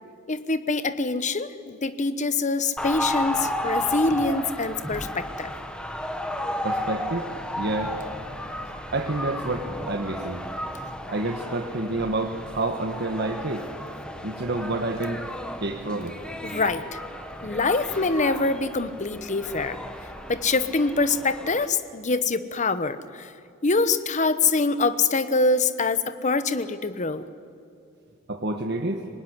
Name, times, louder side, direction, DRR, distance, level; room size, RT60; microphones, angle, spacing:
voice 1, 0.3-5.5 16.4-17.0 17.4-19.8 20.3-23.3 23.6-27.3, left 3 dB, 35° left, 12 dB, 1.0 m, -25 dB
sound 1, 2.8-21.7, left 1 dB, 5° left, 1.5 m, -33 dB
voice 2, 6.6-7.3 7.6-8.0 8.9-10.4 11.1-13.6 14.2-15.3 15.6-16.2 28.3-29.1, right 2 dB, 55° right, 4 dB, 1.4 m, -28 dB
25.0 x 19.5 x 9.9 m, 2.4 s
head